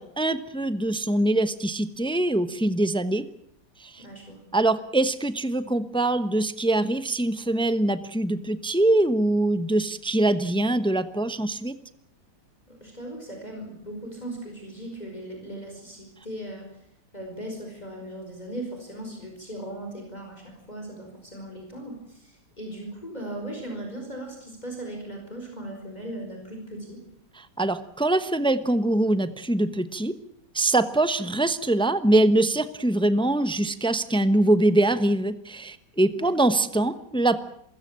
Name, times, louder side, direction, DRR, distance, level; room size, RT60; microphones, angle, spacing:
voice 1, 0.0-3.2 3.8-4.0 4.5-11.8 27.4-30.1 30.5-37.4, right 1 dB, 5° left, 12 dB, 0.7 m, -23 dB
voice 2, 4.0-4.4 12.7-16.7 17.1-27.0 36.1-36.3, right 1 dB, 25° left, 2 dB, 5.1 m, -38 dB
28.0 x 16.5 x 8.7 m, 0.71 s
omnidirectional pair, 1.8 m